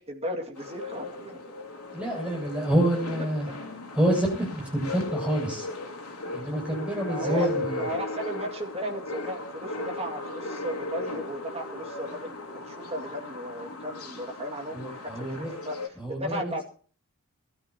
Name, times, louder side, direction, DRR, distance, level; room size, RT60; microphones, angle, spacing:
voice 1, 0.0-1.4 3.5-3.6 7.0-7.5 7.8-12.4 12.7-16.6, equal, 25° right, 2 dB, 2.3 m, -35 dB
sound 1, 0.6-15.9, left 2 dB, 80° left, 2.8 m, -37 dB
voice 2, 1.9-3.5 3.9-5.7 6.3-7.8 14.7-15.6 16.0-16.5, right 1 dB, 5° right, -1 dB, 7.7 m, -27 dB
23.0 x 13.0 x 2.9 m, 0.42 s
head